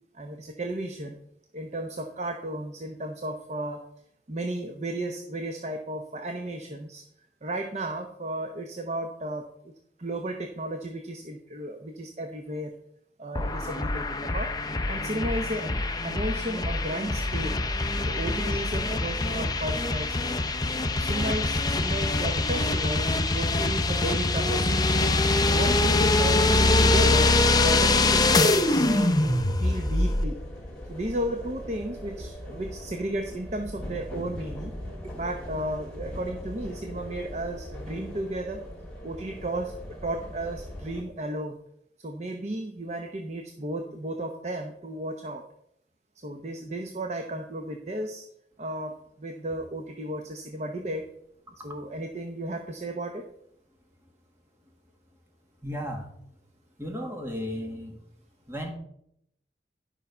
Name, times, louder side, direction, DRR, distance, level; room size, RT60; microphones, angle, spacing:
voice 1, 0.1-1.2 1.5-3.9 4.3-7.0 7.4-9.7 10.0-12.7 13.2-14.6 14.9-17.6 18.1-20.4 20.9-23.1 23.3-25.0 25.4-30.4 30.9-34.7 35.0-38.7 39.0-41.6 42.0-45.4 46.2-48.2 48.6-51.0 51.6-53.3, right 1 dB, 40° right, 5 dB, 0.8 m, -34 dB
sound 1, 13.3-30.2, left 2 dB, 20° left, 0.6 m, -24 dB
sound 2, 26.6-41.0, equal, 5° left, 2.9 m, -40 dB
voice 2, 51.5-51.8 55.6-56.1 56.8-58.0 58.5-58.7, equal, 15° right, 2 dB, 1.7 m, -35 dB
12.0 x 5.6 x 5.5 m, 0.73 s
head